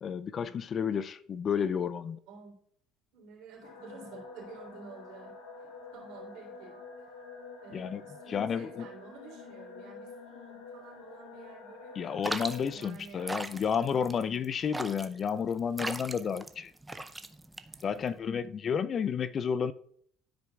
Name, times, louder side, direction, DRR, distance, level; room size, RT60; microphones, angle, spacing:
voice 1, 0.0-2.2 7.7-8.0 8.3-8.7 12.0-16.7 17.8-19.7, left 7 dB, 40° left, 0.4 m, -31 dB
voice 2, 2.3-2.6 3.1-5.3 5.6-6.8 7.6-12.3 12.7-14.1 18.0-18.5, right 4 dB, 75° right, 3.2 m, -51 dB
sound 1, 3.6-12.7, left 4 dB, 90° left, 1.1 m, -48 dB
sound 2, 12.2-18.2, right 2 dB, 10° right, 0.5 m, -39 dB
13.0 x 4.8 x 2.3 m
supercardioid pair, 85°, 0 cm